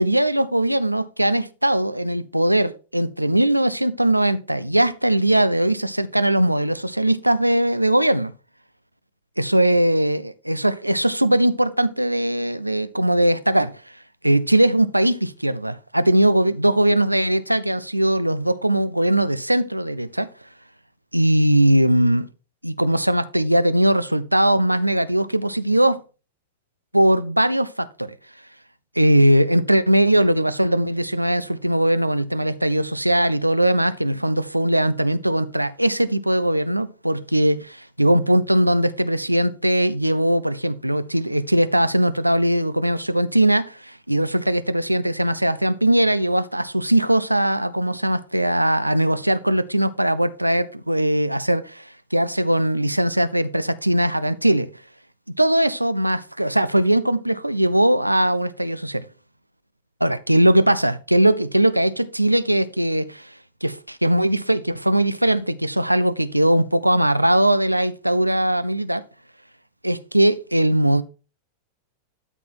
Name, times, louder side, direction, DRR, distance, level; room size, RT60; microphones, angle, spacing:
voice 1, 0.0-8.3 9.4-13.7 14.2-20.3 21.1-22.3 22.6-26.0 26.9-28.2 29.0-54.7 55.4-59.1 60.0-63.3 63.6-69.0 69.8-71.0, right 1 dB, 85° right, 0.5 m, -20 dB
12.5 x 4.2 x 4.5 m
figure-of-eight pair, 90°, 0 cm